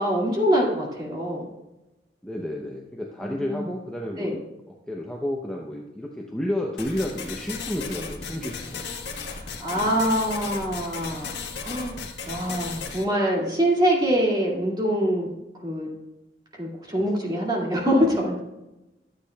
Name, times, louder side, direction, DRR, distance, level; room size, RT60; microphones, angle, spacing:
voice 1, 0.0-1.4 3.2-3.6 4.2-4.4 9.2-12.0 12.2-15.3 15.6-15.9 16.5-18.4, equal, 25° right, -3 dB, 2.2 m, -24 dB
voice 2, 2.2-4.4 4.9-8.8 9.7-10.0 17.0-17.1, left 1 dB, 5° left, -2 dB, 0.7 m, -31 dB
sound 1, 6.8-13.0, left 5 dB, 75° left, 1.3 m, -35 dB
13.0 x 8.2 x 2.3 m, 0.98 s
head